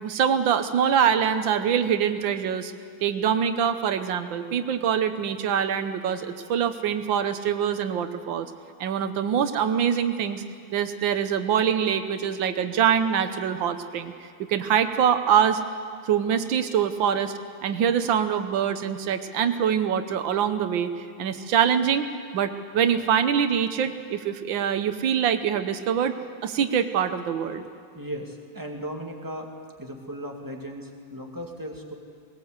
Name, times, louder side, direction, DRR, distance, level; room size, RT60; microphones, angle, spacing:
voice 1, 0.0-2.7 3.0-8.5 8.8-10.4 10.7-15.6 16.0-17.3 17.6-22.1 22.3-26.2 26.4-27.6, right 8 dB, 90° right, 9 dB, 1.6 m, -24 dB
voice 2, 27.9-29.5 29.8-31.9, equal, 10° right, 1 dB, 2.0 m, -36 dB
20.5 x 18.5 x 8.1 m, 2.2 s
omnidirectional pair, 2.1 m